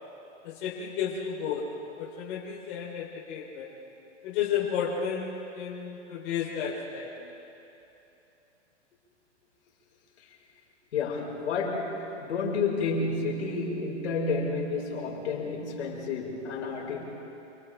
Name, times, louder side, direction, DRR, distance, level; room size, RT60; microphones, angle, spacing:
voice 1, 0.4-1.7 2.0-3.7 4.2-7.1, left 7 dB, 45° left, -4 dB, 3.6 m, -32 dB
voice 2, 10.9-17.0, left 4 dB, 70° left, -1 dB, 5.4 m, -30 dB
29.5 x 28.5 x 3.5 m, 3.0 s
hypercardioid pair, 145°, 35 cm